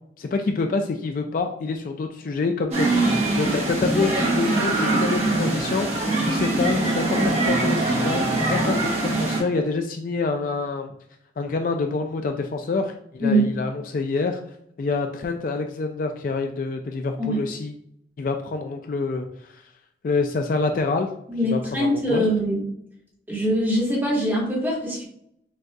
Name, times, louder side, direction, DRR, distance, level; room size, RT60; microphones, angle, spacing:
voice 1, 0.2-10.9 11.4-14.4 14.8-17.7 18.2-19.3 19.5-19.6 20.0-21.1 21.5-22.2, left 4 dB, 45° left, 5 dB, 0.3 m, -26 dB
sound 1, 2.7-9.4, right 2 dB, 35° right, 1.2 m, -23 dB
voice 2, 21.3-22.6 23.3-25.0, right 1 dB, 10° right, -5 dB, 1.3 m, -23 dB
6.2 x 2.6 x 2.2 m, 0.71 s
head